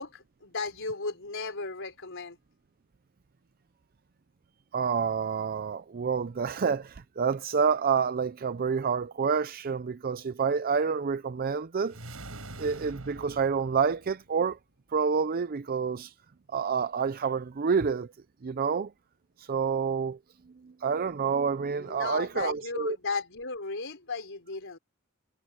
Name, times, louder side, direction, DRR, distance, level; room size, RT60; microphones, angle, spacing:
voice 1, 0.0-2.4 21.8-24.8, left 4 dB, 65° left, 4.7 m, -35 dB
voice 2, 4.7-12.0 12.6-14.6 14.9-16.1 16.5-18.1 18.4-18.9 19.4-20.2 20.8-23.0, right 6 dB, 45° right, 0.5 m, -28 dB
sound 1, 11.8-14.4, right 2 dB, 85° right, 5.4 m, -45 dB
head